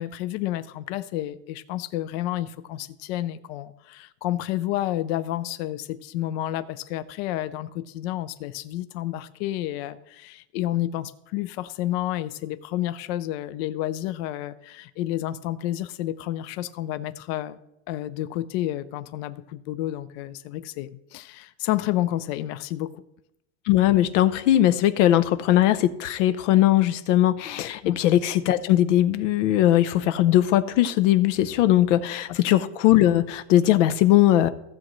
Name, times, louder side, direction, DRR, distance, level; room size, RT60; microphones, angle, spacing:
voice 1, 0.0-17.6 17.9-23.0 27.8-28.0 32.3-32.4, left 14 dB, 60° left, 13 dB, 0.5 m, -30 dB
voice 2, 23.7-34.5, left 13 dB, 90° left, 13 dB, 0.8 m, -20 dB
15.5 x 7.5 x 3.1 m, 0.82 s
supercardioid pair, 165°, 36 cm